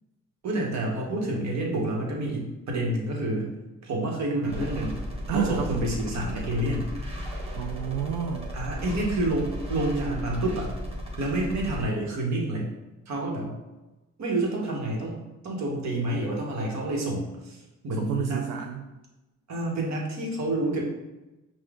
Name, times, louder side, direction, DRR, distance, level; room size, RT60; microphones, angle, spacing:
voice 1, 0.4-3.5 3.8-5.0 5.3-6.9 8.5-10.7 11.2-12.7 13.1-13.5 14.2-15.2 15.4-18.5 19.5-20.8, right 1 dB, 65° right, -1 dB, 1.4 m, -28 dB
sound 1, 4.5-11.8, equal, 20° right, 1.2 m, -35 dB
voice 2, 5.3-5.8 7.5-8.5 18.0-18.8, right 8 dB, 90° right, 2 dB, 0.4 m, -30 dB
5.6 x 2.4 x 3.7 m, 1.1 s
cardioid pair, 90°, 30 cm